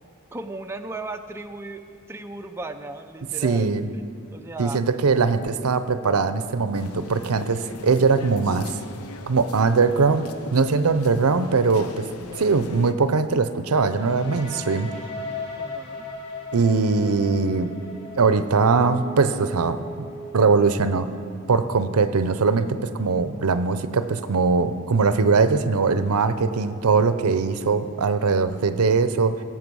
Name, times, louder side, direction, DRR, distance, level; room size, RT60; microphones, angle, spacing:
voice 1, 0.3-3.7 4.0-4.1 4.3-4.8 15.6-16.0, right 2 dB, 10° right, 5 dB, 0.4 m, -36 dB
voice 2, 3.4-3.9 4.6-8.7 9.3-10.3 10.5-12.0 12.4-14.9 16.5-17.7 18.1-20.1 20.3-21.1 21.5-29.4, right 4 dB, 80° right, 12 dB, 0.6 m, -21 dB
sound 1, 6.7-12.9, left 4 dB, 80° left, 0.7 m, -41 dB
sound 2, 13.9-21.7, left 2 dB, 30° left, 2.6 m, -37 dB
16.5 x 7.7 x 6.2 m, 2.4 s
head